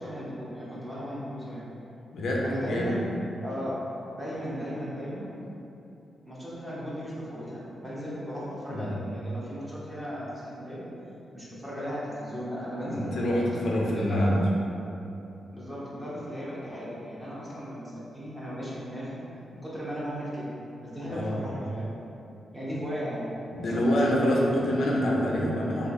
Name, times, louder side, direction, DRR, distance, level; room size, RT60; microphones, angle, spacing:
voice 1, 0.0-1.6 2.4-3.0 3.4-3.8 4.1-5.3 6.3-10.8 11.3-13.3 13.9-14.3 15.5-19.2 19.5-20.5 20.8-21.8 22.5-23.2 23.6-24.5, equal, 15° right, -8 dB, 0.7 m, -36 dB
voice 2, 2.1-3.0 8.7-8.9 12.9-14.4 21.1-21.4 23.5-25.9, equal, 70° left, -3 dB, 0.4 m, -26 dB
2.7 x 2.4 x 4.0 m, 2.9 s
wide cardioid pair, 145°, 0 cm